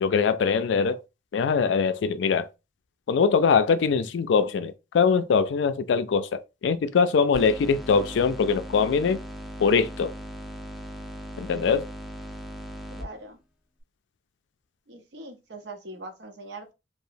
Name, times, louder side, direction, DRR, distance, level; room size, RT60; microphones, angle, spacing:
voice 1, 0.0-1.0 1.3-2.5 3.1-9.2 9.6-10.1 11.4-11.9, left 5 dB, 90° left, 0.3 m, -22 dB
sound 1, 7.3-13.1, equal, ahead, 0.4 m, -38 dB
voice 2, 12.9-13.4 14.9-16.7, right 2 dB, 75° right, 0.6 m, -41 dB
2.9 x 2.0 x 2.5 m
head